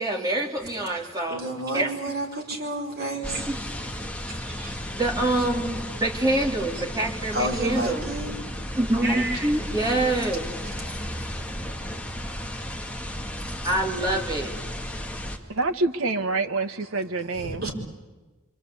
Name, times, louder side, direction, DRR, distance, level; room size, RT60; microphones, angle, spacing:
voice 1, 0.0-1.4 1.7-1.9 3.5-3.6 4.9-8.0 8.7-10.5 13.6-14.5, right 1 dB, 15° right, -2 dB, 3.8 m, -25 dB
voice 2, 0.8-3.5 4.4-4.7 7.3-8.3 9.0-9.5 13.6-13.7 17.3-17.7, right 1 dB, 45° right, 0 dB, 4.9 m, -31 dB
sound 1, 3.2-15.4, equal, 5° left, 2.1 m, -34 dB
voice 3, 15.5-17.6, right 3 dB, 75° right, 7 dB, 1.3 m, -26 dB
26.5 x 26.0 x 8.6 m, 1.2 s
head